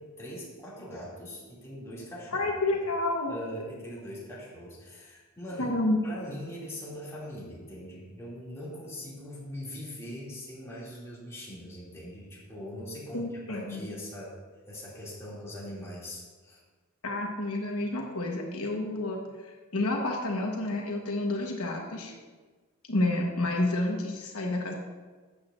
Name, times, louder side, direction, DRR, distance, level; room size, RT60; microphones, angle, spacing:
voice 1, 0.0-2.5 3.3-14.4 14.7-16.6, equal, 15° left, -7 dB, 2.5 m, -41 dB
voice 2, 2.3-3.3 5.6-6.0 13.1-13.9 17.0-22.1 22.9-24.7, left 2 dB, 85° left, 1 dB, 1.2 m, -29 dB
12.5 x 8.1 x 2.6 m, 1.4 s
head